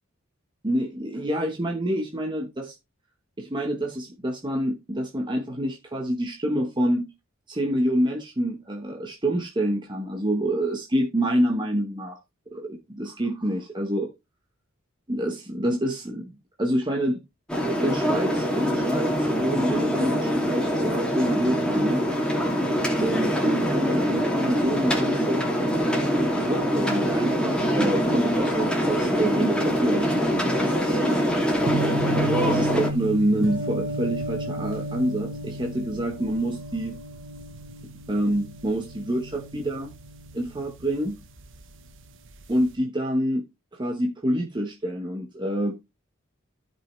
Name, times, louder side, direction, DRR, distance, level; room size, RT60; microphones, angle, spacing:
voice 1, 0.6-2.7 3.4-7.1 7.5-12.2 12.5-14.1 15.1-16.3 16.6-17.2 17.8-22.0 23.0-25.4 26.0-31.0 32.4-37.0 37.8-39.9 40.3-41.2 42.5-43.4 43.7-45.7, right 1 dB, 25° right, 1.1 m, -27 dB
sound 1, 17.5-32.9, equal, 5° left, 2.6 m, -24 dB
sound 2, 31.5-41.6 41.9-42.6, right 1 dB, 65° right, 1.2 m, -34 dB
13.5 x 5.6 x 3.2 m
head